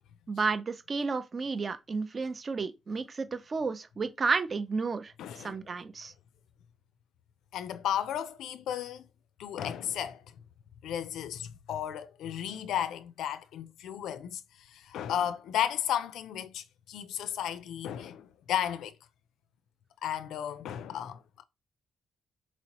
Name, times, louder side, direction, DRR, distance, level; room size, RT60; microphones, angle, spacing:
voice 1, 0.3-5.1 5.4-6.1, right 4 dB, 40° right, 0.6 m, -32 dB
voice 2, 5.2-5.6 7.5-9.1 9.4-10.4 10.8-18.9 20.0-21.4, left 10 dB, 90° left, 0.4 m, -34 dB
4.1 x 2.9 x 2.9 m
cardioid pair, 95°, 0 cm